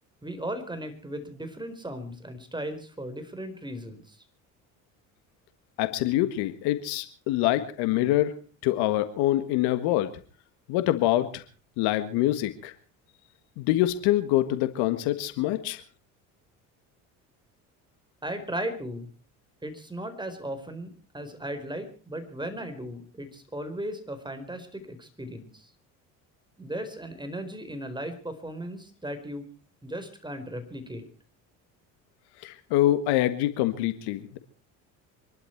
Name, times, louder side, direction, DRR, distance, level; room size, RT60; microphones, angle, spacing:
voice 1, 0.2-4.2 18.2-19.1 19.6-25.7 26.6-29.5 29.8-31.1, right 1 dB, 10° right, 8 dB, 4.4 m, -36 dB
voice 2, 5.8-8.4 8.6-10.1 10.7-11.4 11.8-12.7 13.6-15.8 32.4-34.4, left 14 dB, 70° left, 11 dB, 1.8 m, -25 dB
26.0 x 12.0 x 4.5 m, 0.38 s
hypercardioid pair, 70°, 40 cm